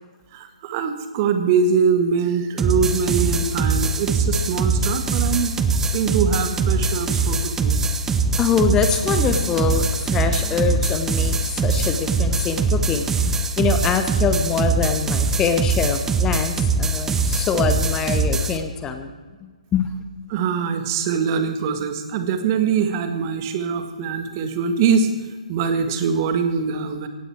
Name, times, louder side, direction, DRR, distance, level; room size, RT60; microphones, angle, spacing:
voice 1, 0.3-5.5 5.9-7.8 20.3-25.2 25.5-27.1, right 6 dB, 30° right, 8 dB, 1.7 m, -23 dB
sound 1, 2.6-18.6, right 3 dB, 10° right, 0.8 m, -22 dB
voice 2, 8.4-19.1 19.4-19.9, left 6 dB, 15° left, 8 dB, 1.0 m, -24 dB
17.0 x 16.5 x 4.6 m, 1.4 s
figure-of-eight pair, 130°, 4 cm